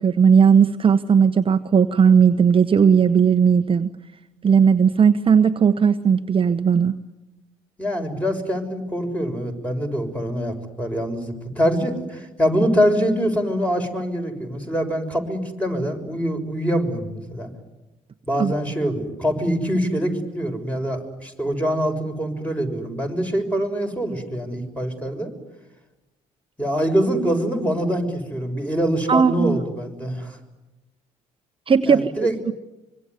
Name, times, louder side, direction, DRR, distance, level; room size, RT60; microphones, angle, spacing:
voice 1, 0.0-3.9 4.4-6.9 18.4-18.5 29.1-29.6 31.7-32.5, right 6 dB, 35° right, 9 dB, 1.0 m, -17 dB
voice 2, 7.8-17.5 18.3-25.3 26.6-30.4 31.8-32.4, equal, 10° left, 4 dB, 6.5 m, -24 dB
25.0 x 24.0 x 9.7 m, 1.0 s
hypercardioid pair, 55°, 16 cm